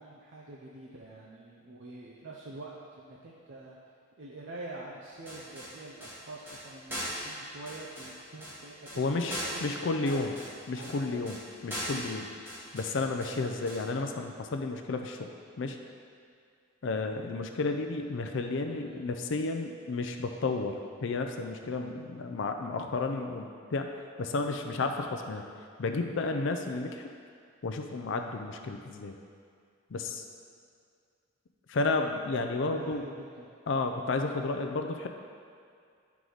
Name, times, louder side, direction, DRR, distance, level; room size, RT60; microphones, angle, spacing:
voice 1, 0.0-3.8 4.2-10.2 10.7-11.2 12.6-12.7 18.7-19.0 32.7-33.5, right 2 dB, 60° right, -3 dB, 0.6 m, -46 dB
sound 1, 5.0-13.9, equal, 10° right, 1.2 m, -41 dB
voice 2, 9.0-10.3 10.7-11.4 11.6-12.3 12.7-15.3 15.6-15.8 16.8-23.9 24.2-25.4 25.8-27.1 27.6-29.1 29.9-30.2 31.7-33.0 33.7-35.1, left 3 dB, 60° left, 4 dB, 0.5 m, -32 dB
9.8 x 4.7 x 3.9 m, 2.2 s
head